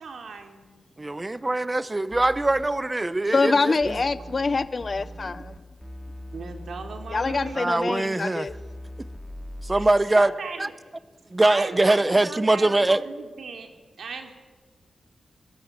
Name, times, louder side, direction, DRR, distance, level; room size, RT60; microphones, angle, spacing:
voice 1, 0.0-0.8 6.3-7.7 9.7-10.7 11.4-13.7 14.0-14.3, right 5 dB, 70° right, 3.3 m, -38 dB
voice 2, 1.0-4.0 7.6-8.5 9.6-10.3 10.6-10.7 11.3-13.0, right 2 dB, 15° right, 0.9 m, -22 dB
sound 1, 2.1-2.7 3.8-7.6 8.5-9.9, equal, ahead, 2.4 m, -40 dB
voice 3, 3.3-5.6 7.1-8.5, left 4 dB, 35° left, 0.8 m, -25 dB
24.0 x 21.0 x 8.2 m
wide cardioid pair, 140°, 0 cm